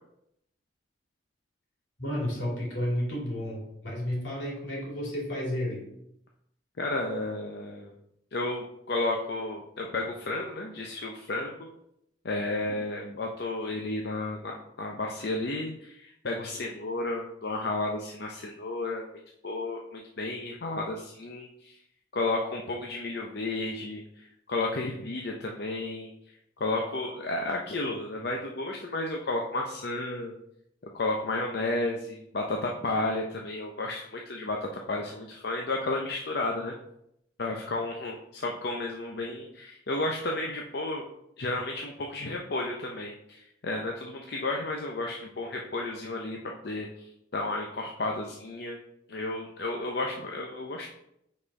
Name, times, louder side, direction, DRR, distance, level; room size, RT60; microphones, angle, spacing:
voice 1, 2.0-5.9, left 1 dB, 80° left, -4 dB, 2.7 m, -32 dB
voice 2, 6.8-7.9 8.3-11.7 12.2-19.1 19.4-21.8 22.1-26.1 26.6-30.3 30.9-36.7 37.4-41.0 41.4-47.0 47.3-48.8 49.1-50.9, left 2 dB, 60° left, 0 dB, 0.6 m, -32 dB
5.4 x 4.3 x 4.7 m, 0.78 s
head